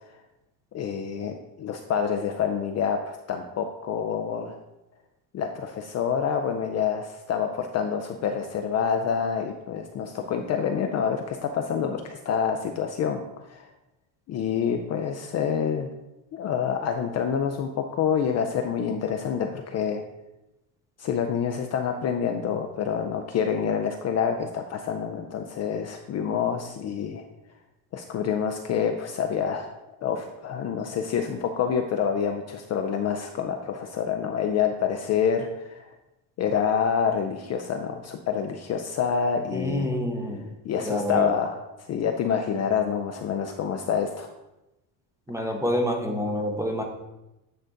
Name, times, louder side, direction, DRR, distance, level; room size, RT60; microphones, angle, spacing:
voice 1, 0.7-4.6 5.3-13.2 13.5-13.6 14.3-15.9 16.3-20.0 21.0-27.2 27.9-29.7 30.0-35.9 36.4-39.9 40.6-44.3, left 7 dB, 40° left, 5 dB, 0.4 m, -27 dB
voice 2, 39.5-40.5 40.8-41.3 45.3-46.8, equal, 5° right, 3 dB, 0.7 m, -27 dB
9.0 x 3.8 x 3.8 m, 0.95 s
cardioid pair, 140°, 45 cm